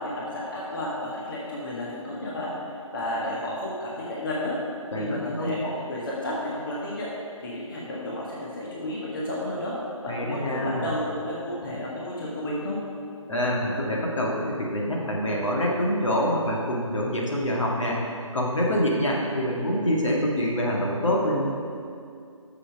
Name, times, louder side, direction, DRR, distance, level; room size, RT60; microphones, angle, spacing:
voice 1, 0.0-2.5 2.9-4.5 5.0-7.1 7.4-9.7 10.0-12.8, left 1 dB, 40° left, -5 dB, 1.5 m, -32 dB
voice 2, 4.9-5.5 10.1-10.9 13.3-18.0 18.3-21.6, equal, 65° left, -3 dB, 1.9 m, -26 dB
6.9 x 6.9 x 6.2 m, 2.4 s
figure-of-eight pair, 155°, 17 cm